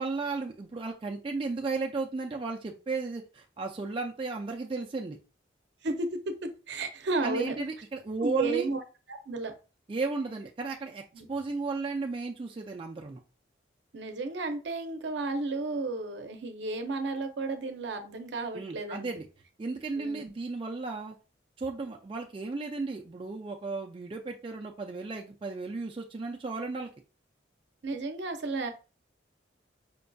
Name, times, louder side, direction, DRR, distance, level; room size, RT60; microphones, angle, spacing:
voice 1, 0.0-5.2 7.2-8.7 9.9-11.0 11.3-13.2 18.5-19.3 19.6-21.2 21.6-26.9, right 3 dB, 25° right, 1 dB, 0.3 m, -34 dB
voice 2, 5.8-7.6 8.2-8.8 9.1-9.5 11.1-11.3 13.9-19.2 20.0-20.2 27.8-28.7, right 3 dB, 70° right, 6 dB, 0.6 m, -33 dB
5.1 x 2.5 x 2.3 m, 0.33 s
head